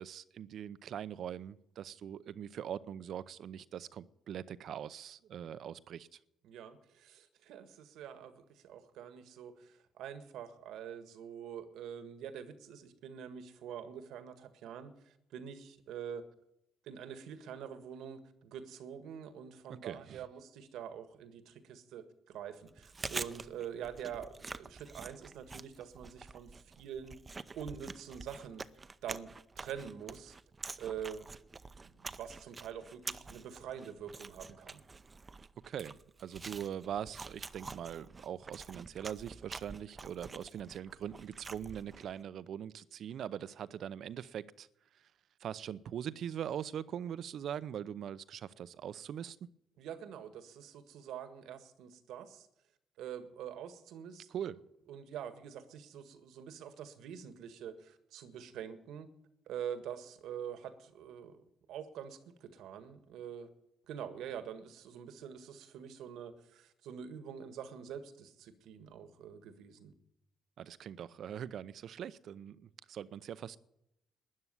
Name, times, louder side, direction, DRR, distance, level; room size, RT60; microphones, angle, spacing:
voice 1, 0.0-6.2 19.8-20.2 35.7-44.7 45.4-49.5 54.3-54.6 70.6-73.6, right 9 dB, 65° right, 17 dB, 0.7 m, -42 dB
voice 2, 6.4-16.2 16.8-27.2 27.5-28.6 29.0-30.3 30.8-31.3 31.8-34.8 49.8-52.5 53.0-54.6 54.9-59.1 59.5-61.4 61.7-63.5 63.9-69.9, right 8 dB, 85° right, 11 dB, 1.6 m, -45 dB
Chewing mastication, 22.7-42.2, right 4 dB, 30° right, 0.7 m, -47 dB
13.0 x 9.7 x 9.6 m, 0.82 s
cardioid pair, 90°, 0 cm